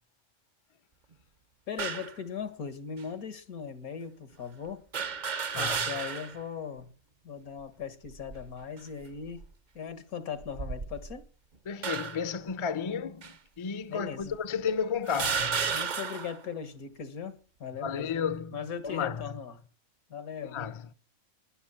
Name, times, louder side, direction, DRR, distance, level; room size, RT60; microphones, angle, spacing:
voice 1, 1.7-4.8 5.6-6.9 7.2-9.4 9.7-11.3 13.9-14.4 15.7-18.1 18.5-19.6 20.1-20.6, left 7 dB, 80° left, 2.1 m, -39 dB
sound 1, 1.8-2.2 3.0-3.1 4.9-6.4 6.8-6.9 8.1-8.5 9.2-9.4 10.4-11.2 11.8-12.3 13.2-13.3 14.2-14.3 15.1-16.4, right 6 dB, 40° right, 0.7 m, -33 dB
voice 2, 5.5-5.9 11.7-15.7 17.8-19.3 20.5-20.9, left 6 dB, 30° left, 0.5 m, -33 dB
12.5 x 10.5 x 7.3 m
omnidirectional pair, 1.5 m